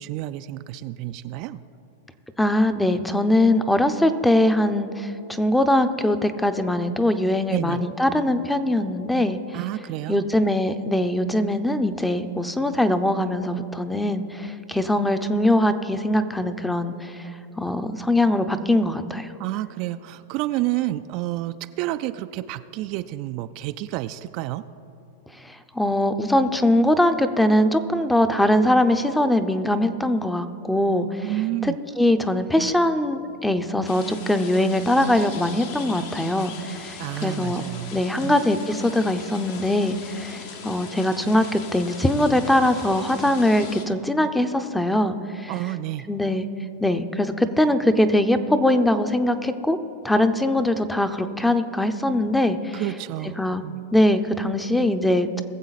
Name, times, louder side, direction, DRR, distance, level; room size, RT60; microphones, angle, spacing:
voice 1, 0.0-1.6 7.5-7.8 9.5-10.3 19.4-24.6 31.2-31.8 37.0-38.4 45.5-46.1 52.7-53.8, right 15 dB, 50° right, 10 dB, 0.3 m, -30 dB
voice 2, 2.4-9.4 10.1-17.2 17.6-19.3 25.4-31.3 31.6-37.6 37.9-45.5 46.1-46.5 46.8-49.8 50.0-52.8 53.4-53.6 53.9-55.4, left 1 dB, 5° left, 10 dB, 0.6 m, -22 dB
sound 1, 33.9-43.9, left 6 dB, 60° left, 1.3 m, -40 dB
20.5 x 7.3 x 4.1 m, 2.7 s
hypercardioid pair, 130°, 0 cm